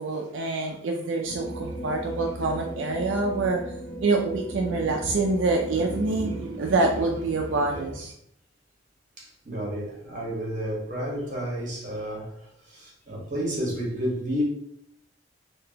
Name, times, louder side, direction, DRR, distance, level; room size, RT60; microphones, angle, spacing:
voice 1, 0.0-3.6 4.0-8.1, right 3 dB, 85° right, 2 dB, 0.4 m, -26 dB
sound 1, 1.3-7.9, right 1 dB, 5° left, 1.1 m, -37 dB
voice 2, 9.2-14.4, equal, 40° right, -3 dB, 1.4 m, -31 dB
3.8 x 2.7 x 2.8 m, 0.72 s
head